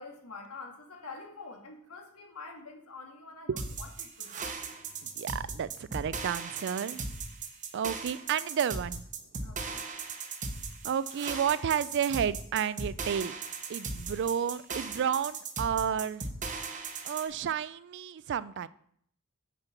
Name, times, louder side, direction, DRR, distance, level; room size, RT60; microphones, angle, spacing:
voice 1, 0.0-4.3 9.4-9.8, left 3 dB, 90° left, 2 dB, 1.8 m, -46 dB
sound 1, 3.6-17.3, right 4 dB, 35° right, 0.9 m, -38 dB
voice 2, 5.2-7.0 7.7-9.0 10.8-13.3 13.7-16.3 17.0-18.7, right 8 dB, 55° right, 17 dB, 0.3 m, -31 dB
7.4 x 6.7 x 5.7 m, 0.67 s
head